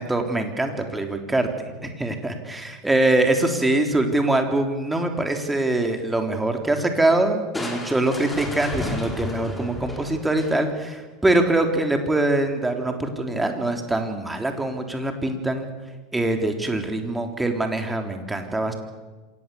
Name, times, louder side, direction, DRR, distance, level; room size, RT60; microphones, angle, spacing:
voice 1, 0.0-1.5 1.8-15.7 16.1-18.7, right 2 dB, 10° right, 4 dB, 3.5 m, -23 dB
Crushing, 7.5-10.9, left 2 dB, 10° left, 4.3 m, -32 dB
27.0 x 18.0 x 7.1 m, 1.3 s
figure-of-eight pair, 85°, 0 cm